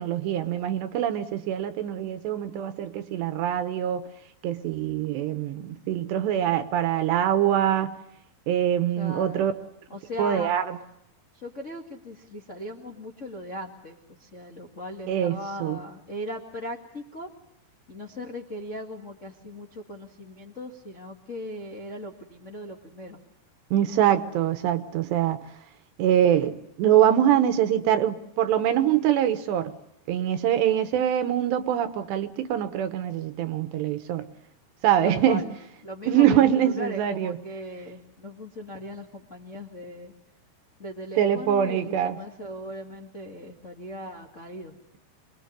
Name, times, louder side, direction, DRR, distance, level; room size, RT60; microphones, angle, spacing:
voice 1, 0.0-4.0 4.4-8.0 8.5-9.5 10.2-10.6 15.1-15.8 23.7-25.4 26.0-29.7 30.1-34.3 34.8-35.4 36.1-37.4 41.2-42.2, right 10 dB, 75° right, 10 dB, 3.1 m, -24 dB
voice 2, 9.0-10.5 11.3-17.3 17.9-23.2 35.0-35.5 35.8-40.1 40.8-44.7, equal, 80° left, 0 dB, 0.6 m, -38 dB
27.5 x 21.5 x 9.5 m, 0.80 s
omnidirectional pair, 5.4 m